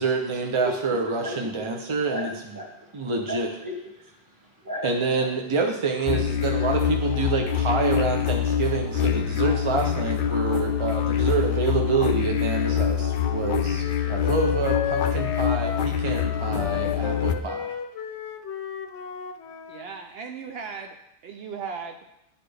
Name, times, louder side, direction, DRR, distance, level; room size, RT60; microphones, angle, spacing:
voice 1, 0.0-2.3 2.9-3.5 4.8-17.7, right 4 dB, 40° right, 2 dB, 0.4 m, -27 dB
voice 2, 0.6-1.7 2.1-5.3, equal, 20° right, -2 dB, 1.3 m, -36 dB
sound 1, 6.1-17.4, left 8 dB, 60° left, 0.6 m, -25 dB
Wind instrument woodwind instrument, 12.5-19.8, left 8 dB, 80° left, 0.9 m, -33 dB
voice 3, 19.7-21.0 21.2-22.0, right 6 dB, 70° right, 5 dB, 0.7 m, -36 dB
11.0 x 4.2 x 3.3 m, 0.84 s
omnidirectional pair, 1.1 m